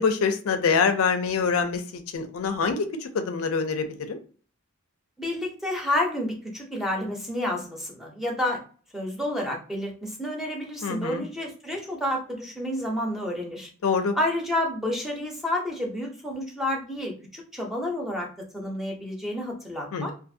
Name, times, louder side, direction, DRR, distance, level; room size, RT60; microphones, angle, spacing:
voice 1, 0.0-4.2 10.8-11.2 13.8-14.2 19.9-20.1, left 5 dB, 75° left, 7 dB, 0.4 m, -25 dB
voice 2, 5.2-8.6 8.9-13.7 14.1-20.1, left 1 dB, ahead, 0 dB, 0.6 m, -30 dB
2.5 x 2.5 x 2.6 m, 0.40 s
head